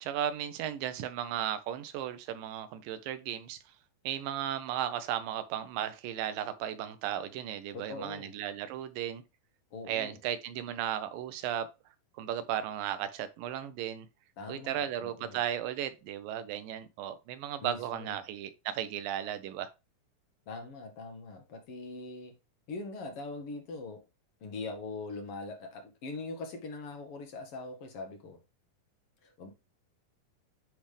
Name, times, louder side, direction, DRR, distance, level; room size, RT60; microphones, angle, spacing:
voice 1, 0.0-3.6 4.0-9.2 9.9-11.7 12.2-14.1 14.5-19.7, right 10 dB, 85° right, 2.4 m, -35 dB
voice 2, 7.7-8.3 9.7-10.2 14.4-15.4 17.6-18.2 20.5-22.3 22.7-24.0 24.4-28.4 29.2-29.5, left 3 dB, 65° left, 1.5 m, -42 dB
10.0 x 3.4 x 3.3 m
omnidirectional pair, 3.9 m